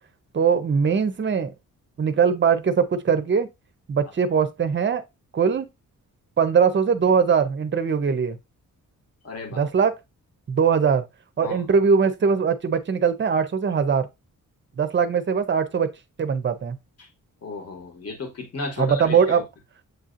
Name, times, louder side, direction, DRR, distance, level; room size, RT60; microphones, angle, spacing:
voice 1, 0.3-1.5 2.0-3.5 3.9-5.0 5.3-5.7 6.4-8.4 9.5-9.9 10.5-11.0 11.4-14.1 14.8-15.9 16.2-16.8 18.8-19.4, right 6 dB, 35° right, 0.5 m, -21 dB
voice 2, 9.2-9.7 11.4-11.7 17.0-17.1 17.4-19.4, left 3 dB, 45° left, 1.1 m, -34 dB
7.8 x 2.7 x 2.5 m
wide cardioid pair, 170°, 34 cm